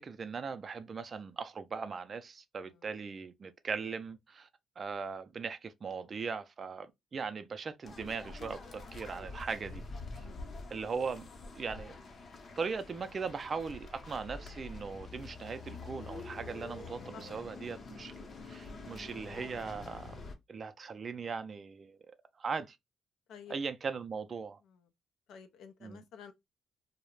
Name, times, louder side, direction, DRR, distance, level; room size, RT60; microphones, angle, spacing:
voice 1, 0.0-4.5 4.8-9.8 10.7-11.3 11.5-12.0 12.6-20.2 20.5-22.0 22.4-22.8 23.5-24.6 25.8-26.0, right 5 dB, 40° right, 0.3 m, -39 dB
sound 1, 7.8-20.3, left 3 dB, 50° left, 0.7 m, -46 dB
voice 2, 10.2-10.7 17.1-17.2 23.3-23.5 25.3-26.3, left 7 dB, 80° left, 0.4 m, -51 dB
2.3 x 2.0 x 3.0 m
cardioid pair, 90°, 0 cm